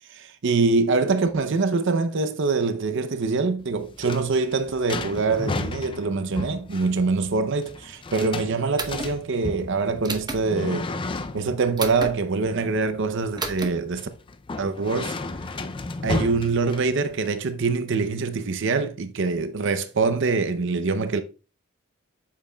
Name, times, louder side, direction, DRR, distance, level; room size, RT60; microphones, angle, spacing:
voice 1, 0.1-10.9 11.3-14.1 14.6-15.2 16.0-21.2, right 4 dB, 60° right, 0.6 m, -24 dB
sound 1, 3.6-17.3, left 3 dB, 25° left, 0.4 m, -34 dB
sound 2, 8.8-9.1 10.0-10.4 11.8-12.1 13.4-13.7, right 3 dB, 20° right, 0.8 m, -30 dB
8.5 x 7.5 x 2.3 m
head